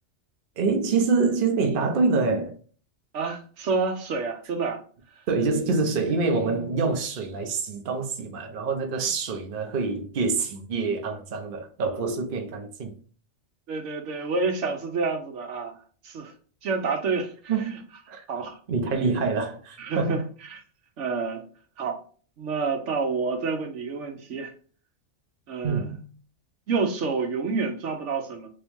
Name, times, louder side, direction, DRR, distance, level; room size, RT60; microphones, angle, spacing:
voice 1, 0.6-2.6 5.3-12.9 17.5-17.7 18.1-18.2 18.7-20.2 25.6-26.0, right 4 dB, 50° right, 0.8 m, -26 dB
voice 2, 3.1-4.8 5.2-5.3 13.7-15.8 16.0-16.3 16.6-17.8 18.3-18.6 19.8-20.6 21.0-21.4 21.8-22.0 22.4-24.5 25.5-25.9 26.7-28.5, right 4 dB, 75° right, 1.1 m, -28 dB
3.5 x 2.9 x 3.4 m
omnidirectional pair, 1.2 m